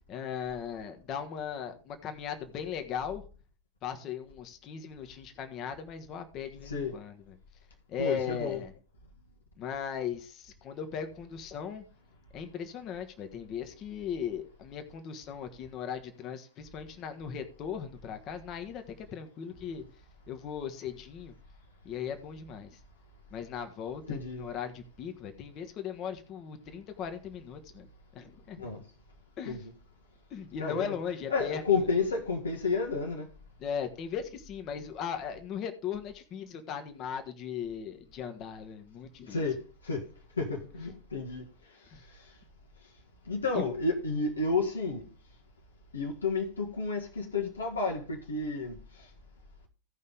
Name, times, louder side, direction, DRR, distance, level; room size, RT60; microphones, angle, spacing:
voice 1, 0.1-3.2 3.8-7.4 7.9-8.7 9.6-11.8 12.3-19.8 20.3-21.3 21.8-22.8 23.3-27.9 28.1-28.6 29.4-29.6 30.3-31.9 33.6-39.4 41.9-42.0 43.5-43.6, left 7 dB, 35° left, 1.4 m, -38 dB
voice 2, 8.0-8.6 24.1-24.4 28.6-28.8 29.5-29.7 30.6-31.0 31.3-33.3 39.3-40.1 40.4-41.4 42.1-42.3 43.2-45.1 45.9-49.1, left 4 dB, 70° left, 1.7 m, -31 dB
16.0 x 5.5 x 3.6 m
figure-of-eight pair, 90°, 0 cm